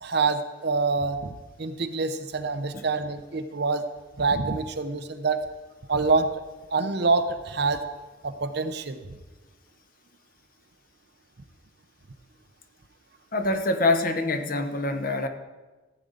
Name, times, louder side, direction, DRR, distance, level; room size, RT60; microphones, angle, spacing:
voice 1, 0.0-3.8 4.2-5.4 5.9-6.4 6.7-7.8 8.2-9.0, right 4 dB, 55° right, 9 dB, 0.7 m, -26 dB
voice 2, 13.3-15.3, left 2 dB, 45° left, 7 dB, 0.9 m, -25 dB
14.5 x 8.7 x 3.9 m, 1.2 s
head